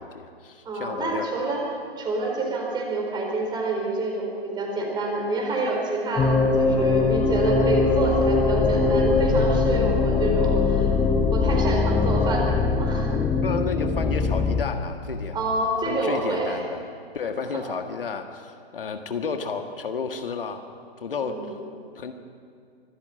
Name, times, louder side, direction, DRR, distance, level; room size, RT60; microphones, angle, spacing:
voice 1, 0.0-1.3 13.4-15.4 15.8-16.8 17.1-20.7 21.0-21.5 21.9-22.1, left 5 dB, 60° left, 6 dB, 1.7 m, -31 dB
voice 2, 0.6-1.6 2.0-10.9 11.3-13.1 15.3-16.6 17.5-17.6 21.3-21.5, right 2 dB, 15° right, 1 dB, 4.2 m, -27 dB
sound 1, 6.2-14.6, left 4 dB, 10° left, 1.0 m, -21 dB
24.5 x 13.5 x 9.0 m, 2.3 s
figure-of-eight pair, 125°, 31 cm